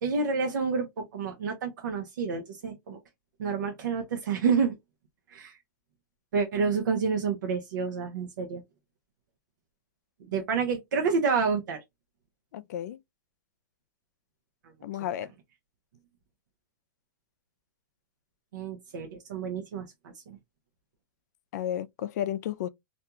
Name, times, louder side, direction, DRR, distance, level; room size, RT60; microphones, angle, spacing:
voice 1, 0.0-3.0 3.4-4.7 5.3-5.6 6.3-8.6 10.3-11.8 18.5-20.4, right 5 dB, 80° right, 0.7 m, -29 dB
voice 2, 12.5-13.0 14.8-15.3 21.5-22.7, left 11 dB, 60° left, 0.4 m, -32 dB
2.5 x 2.2 x 2.8 m
hypercardioid pair, 145°, 10 cm